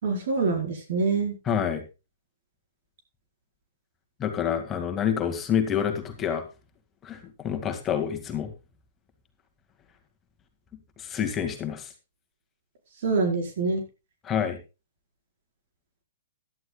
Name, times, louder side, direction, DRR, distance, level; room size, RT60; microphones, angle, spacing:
voice 1, 0.0-1.3 13.0-13.8, right 4 dB, 60° right, 4 dB, 4.8 m, -25 dB
voice 2, 1.5-1.8 4.2-6.4 7.0-7.2 7.4-8.5 11.0-11.9 14.2-14.6, left 8 dB, 20° left, 5 dB, 2.2 m, -27 dB
16.5 x 11.5 x 2.3 m, 0.28 s
hypercardioid pair, 120°, 0 cm